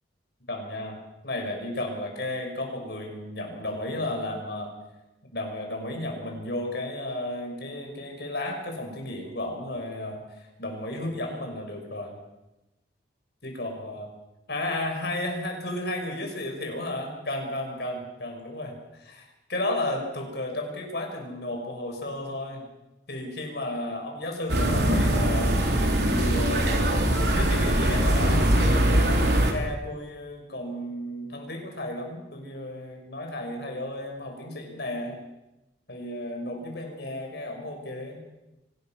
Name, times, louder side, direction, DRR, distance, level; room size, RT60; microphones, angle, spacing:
voice 1, 0.5-1.0 1.2-4.7 5.3-12.2 13.4-14.1 14.5-22.7 23.1-25.6 26.1-35.2 35.9-38.2, left 1 dB, 65° left, 2 dB, 6.3 m, -33 dB
sound 1, 24.5-29.5, right 1 dB, 65° right, 3.8 m, -22 dB
24.5 x 20.0 x 6.2 m, 0.95 s
head